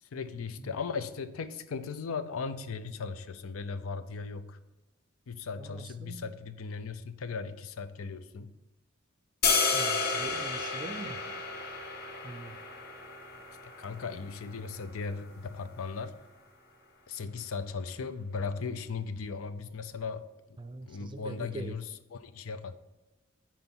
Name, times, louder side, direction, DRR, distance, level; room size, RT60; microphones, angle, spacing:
voice 1, 0.0-4.6 5.3-8.5 13.8-16.2 17.1-20.6 20.9-22.8, left 5 dB, 85° left, 12 dB, 0.5 m, -37 dB
voice 2, 5.6-6.3 9.7-11.2 12.2-12.6 20.6-21.8, right 2 dB, 25° right, 10 dB, 0.4 m, -43 dB
sound 1, 9.4-15.5, left 4 dB, 50° left, 0.9 m, -32 dB
9.2 x 4.4 x 4.4 m, 1.1 s
head